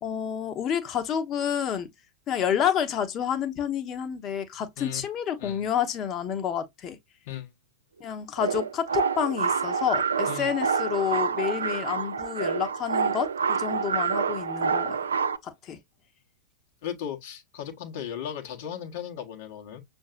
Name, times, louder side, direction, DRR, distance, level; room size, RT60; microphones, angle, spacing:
voice 1, 0.0-1.9 2.3-7.0 8.0-15.1 15.4-15.8, left 8 dB, 30° left, 1.0 m, -29 dB
sound 1, 8.4-15.4, right 6 dB, 75° right, 0.4 m, -27 dB
voice 2, 16.8-19.8, left 9 dB, 55° left, 1.1 m, -36 dB
6.4 x 2.6 x 2.4 m
figure-of-eight pair, 95°, 0 cm